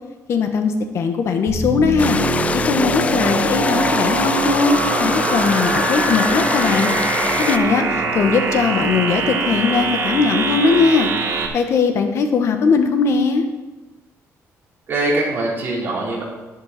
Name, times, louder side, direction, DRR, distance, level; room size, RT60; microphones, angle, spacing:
voice 1, 0.3-2.2 2.6-6.9 7.4-11.1 11.5-13.4, left 5 dB, 55° left, 6 dB, 1.2 m, -19 dB
sound 1, 1.5-11.5, right 4 dB, 55° right, 1.7 m, -23 dB
sound 2, 2.0-7.6, left 5 dB, 25° left, 0.4 m, -23 dB
voice 2, 14.9-16.2, right 2 dB, 40° right, -4 dB, 3.7 m, -23 dB
11.0 x 11.0 x 4.1 m, 1.1 s
cardioid pair, 160°, 6 cm